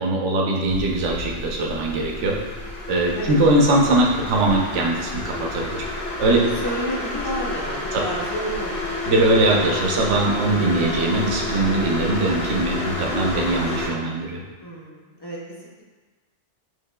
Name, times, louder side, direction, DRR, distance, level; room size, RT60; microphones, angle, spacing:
voice 1, 0.0-2.4 2.9-5.8 6.2-6.4 7.9-8.0 9.0-14.4, right 2 dB, 80° right, -1 dB, 1.0 m, -21 dB
sound 1, 0.6-13.9, left 2 dB, 80° left, 1.1 m, -30 dB
voice 2, 6.3-8.8 14.6-15.8, equal, 40° left, -5 dB, 0.3 m, -31 dB
6.5 x 2.9 x 2.2 m, 1.3 s
omnidirectional pair, 1.2 m